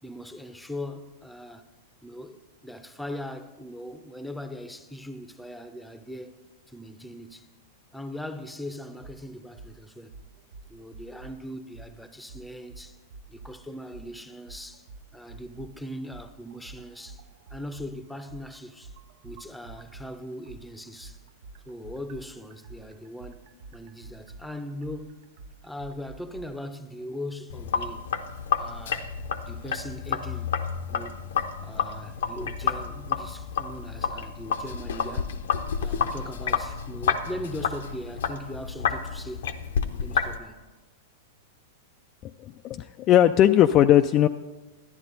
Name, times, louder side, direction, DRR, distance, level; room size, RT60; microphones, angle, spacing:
voice 1, 0.0-1.7 2.0-6.4 6.7-7.5 7.9-10.2 10.7-13.0 13.3-14.9 15.1-17.2 17.5-18.9 19.2-21.2 21.7-25.2 25.6-28.1 28.6-29.1 29.4-30.6 30.9-31.2 31.6-35.4 35.8-39.5 40.0-40.6, left 1 dB, 5° left, 0.7 m, -40 dB
sound 1, 9.0-9.2 9.6-9.7 10.1-11.4 11.7-11.9 12.3-13.6 13.9-14.1 14.5-15.7 16.1-20.1 20.5-26.5, right 3 dB, 60° right, 0.6 m, -46 dB
Sink (filling or washing), 27.5-40.4, left 7 dB, 70° left, 0.7 m, -30 dB
voice 2, 42.2-44.3, left 11 dB, 40° left, 0.3 m, -19 dB
12.0 x 10.5 x 4.0 m
hypercardioid pair, 105°, 0 cm